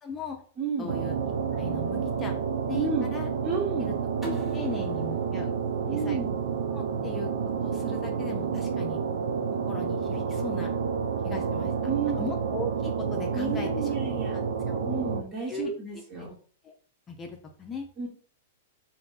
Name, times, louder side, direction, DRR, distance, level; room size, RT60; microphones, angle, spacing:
voice 1, 0.0-0.4 0.8-1.1 1.5-2.3 2.7-3.3 3.8-3.9 4.3-5.5 5.9-6.2 6.7-7.3 7.6-9.0 9.7-10.7 11.2-11.7 12.2-13.7 14.7-14.8 15.5-15.7 16.2-16.3 16.6-16.7 17.1-17.9, left 4 dB, 20° left, 3 dB, 0.6 m, -38 dB
voice 2, 0.6-0.9 2.7-3.1 3.4-3.9 5.9-6.3 11.8-12.2 13.3-14.4 14.8-16.4 18.0-18.1, right 5 dB, 30° right, -5 dB, 1.1 m, -31 dB
sound 1, 0.9-15.2, right 6 dB, 65° right, 0.4 m, -29 dB
sound 2, 4.2-7.0, right 1 dB, ahead, 1.1 m, -43 dB
2.7 x 2.5 x 3.7 m, 0.43 s
figure-of-eight pair, 105°, 0 cm